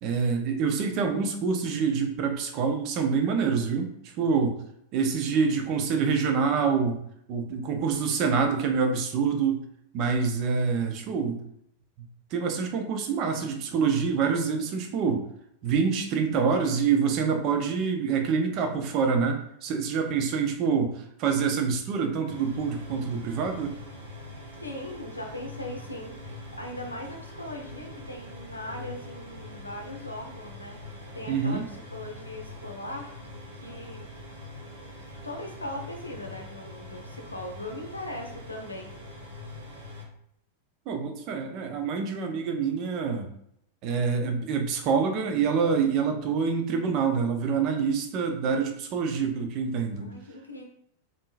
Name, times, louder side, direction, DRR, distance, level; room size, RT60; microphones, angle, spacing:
voice 1, 0.0-4.6 4.9-7.0 7.3-9.6 9.9-11.4 12.3-15.2 15.6-23.7 31.3-31.6 40.9-43.3 43.8-50.1, right 5 dB, 40° right, 4 dB, 0.5 m, -26 dB
sound 1, 22.3-40.0, left 1 dB, 70° right, 0.8 m, -43 dB
voice 2, 24.6-33.1 33.6-34.0 35.2-38.9 50.0-50.6, left 1 dB, 80° left, 2 dB, 0.6 m, -39 dB
3.6 x 2.5 x 2.5 m, 0.71 s
figure-of-eight pair, 90°, 0 cm